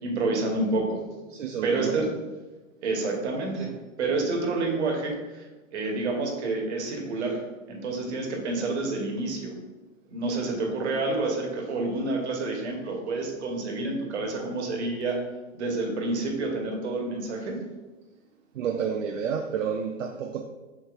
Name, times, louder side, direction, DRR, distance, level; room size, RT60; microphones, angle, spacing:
voice 1, 0.0-1.0 1.6-2.1 2.8-3.7 4.0-5.5 5.7-7.4 7.7-9.5 10.1-15.2 15.5-17.6, right 3 dB, 60° right, 1 dB, 1.3 m, -28 dB
voice 2, 1.3-2.0 18.5-20.4, right 7 dB, 80° right, 4 dB, 0.5 m, -30 dB
6.4 x 3.1 x 2.5 m, 1.2 s
hypercardioid pair, 120°, 39 cm